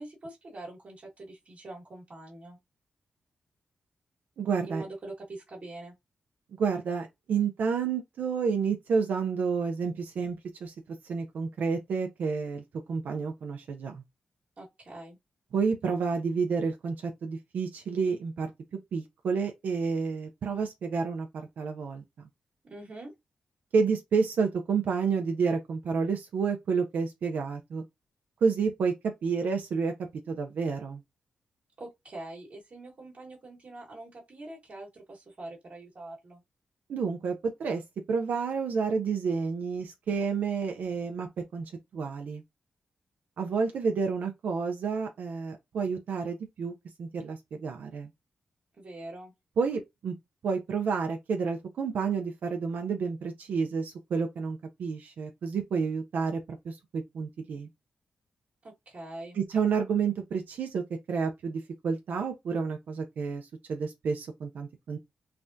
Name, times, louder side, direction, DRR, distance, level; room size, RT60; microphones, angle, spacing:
voice 1, 0.0-2.6 4.7-5.9 14.6-15.2 22.6-23.1 31.8-36.4 48.8-49.3 58.6-59.4, right 2 dB, 60° right, 1.3 m, -44 dB
voice 2, 4.4-4.8 6.5-10.4 10.6-10.7 11.0-12.6 12.9-14.0 15.5-18.5 18.9-21.3 21.6-22.0 23.7-27.8 28.4-28.9 29.2-29.9 30.3-31.0 36.9-37.8 38.1-41.6 41.9-42.4 43.4-46.7 47.0-48.1 49.6-50.1 50.4-57.7 59.4-60.8 61.1-65.0, right 5 dB, 75° right, 0.5 m, -30 dB
3.3 x 2.1 x 2.6 m
supercardioid pair, 40°, 3 cm